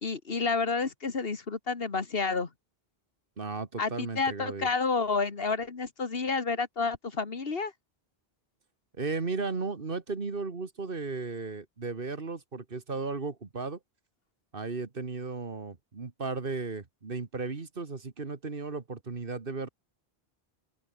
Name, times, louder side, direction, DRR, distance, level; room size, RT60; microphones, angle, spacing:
voice 1, 0.0-2.5 3.8-7.7, left 4 dB, 70° left, 1.9 m, -30 dB
voice 2, 3.4-4.7 9.0-13.8 14.5-19.7, right 4 dB, 60° right, 2.0 m, -35 dB
open air
omnidirectional pair, 1.0 m